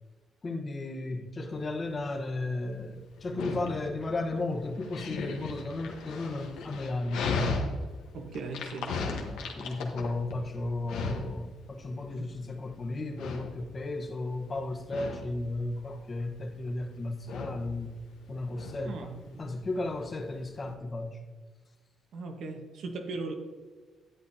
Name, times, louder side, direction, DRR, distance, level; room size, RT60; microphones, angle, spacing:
voice 1, 0.4-7.6 9.3-18.0 18.3-19.1 19.4-21.2, left 2 dB, 35° left, 3 dB, 1.1 m, -34 dB
Dog, 1.5-20.7, left 4 dB, 90° left, 1.2 m, -38 dB
voice 2, 8.1-9.0 18.9-19.5 22.1-23.3, right 3 dB, 70° right, 4 dB, 1.3 m, -38 dB
11.5 x 8.1 x 2.8 m, 1.4 s
cardioid pair, 90°, 0 cm